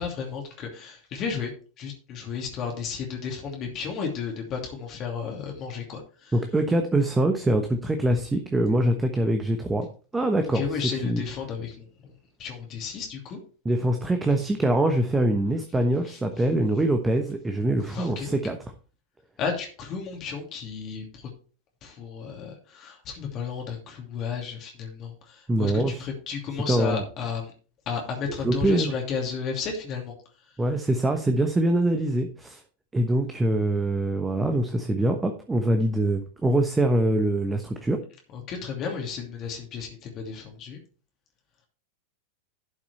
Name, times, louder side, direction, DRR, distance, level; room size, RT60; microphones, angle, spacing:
voice 1, 0.0-1.5 1.8-6.3 10.5-11.8 12.4-13.4 16.1-16.2 17.9-18.4 19.4-21.3 21.8-27.5 27.9-30.1 38.3-40.8, left 6 dB, 35° left, 1 dB, 2.7 m, -33 dB
voice 2, 6.3-9.9 10.1-11.2 13.6-18.6 25.5-26.0 26.7-27.0 28.3-28.9 30.6-32.6 32.9-38.0, right 1 dB, 10° right, 6 dB, 1.1 m, -24 dB
12.0 x 6.0 x 4.4 m, 0.38 s
figure-of-eight pair, 90°, 0 cm